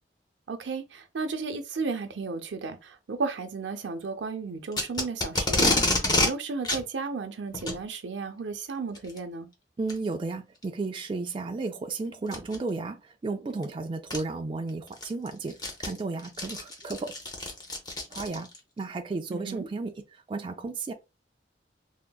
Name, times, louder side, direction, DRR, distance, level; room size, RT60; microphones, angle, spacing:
voice 1, 0.5-9.5 19.3-19.7, right 4 dB, 85° right, 0.5 m, -34 dB
Packing tape duct tape, 4.7-6.3 6.6-6.8 7.5-7.8 8.9-9.2 9.9-10.0 10.6-10.7 12.3-12.6 13.6-13.7 14.1-14.2 14.7-18.6, left 2 dB, 25° left, 0.7 m, -27 dB
voice 2, 9.8-13.0 13.2-17.1 18.1-18.5 18.8-19.9 20.3-20.9, right 3 dB, 30° right, 0.3 m, -33 dB
3.6 x 2.0 x 2.2 m
head